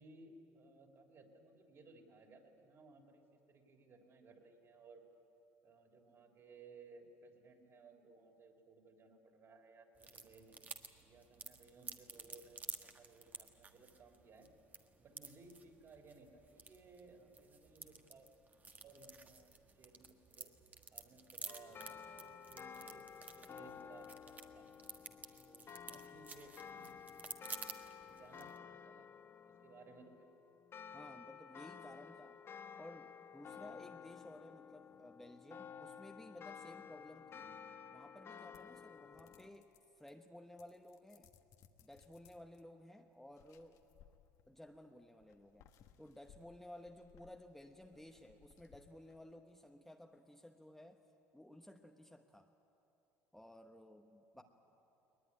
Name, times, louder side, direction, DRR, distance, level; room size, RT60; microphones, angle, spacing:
voice 1, 0.0-5.0 5.6-10.6 11.0-14.5 15.0-18.3 18.8-20.5 20.9-24.7 25.4-27.0 28.1-29.1 29.5-30.3 37.4-37.6 48.1-48.3 54.3-54.4, right 3 dB, 40° right, 3 dB, 3.6 m, -61 dB
sound 1, 10.0-28.6, right 4 dB, 25° right, 1.5 m, -53 dB
sound 2, 21.5-39.5, left 7 dB, 35° left, 0.9 m, -53 dB
voice 2, 30.9-32.4 32.8-37.5 37.9-41.3 41.8-43.8 44.5-45.7 46.0-51.0 51.3-52.5 53.3-54.4, left 1 dB, 5° left, 4 dB, 1.0 m, -56 dB
sound 3, 38.5-40.3 40.6-42.6 43.3-44.7 45.2-49.5, left 9 dB, 60° left, 1.3 m, -66 dB
20.5 x 20.0 x 9.9 m, 2.9 s
supercardioid pair, 100°, 7 cm